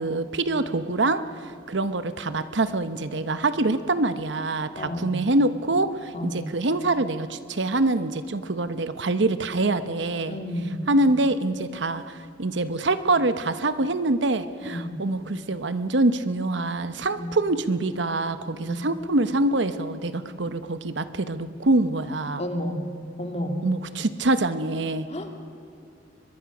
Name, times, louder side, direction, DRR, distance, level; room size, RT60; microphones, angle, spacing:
voice 1, 0.0-10.4 10.9-22.4 23.6-25.1, right 2 dB, 70° right, 12 dB, 0.9 m, -25 dB
voice 2, 4.8-5.2 6.1-6.5 10.3-10.8 14.6-15.0 17.1-17.3 18.5-18.8 22.4-22.8 23.2-23.6 25.1-25.4, left 1 dB, 35° left, 4 dB, 2.3 m, -31 dB
23.0 x 22.0 x 6.1 m, 2.5 s
head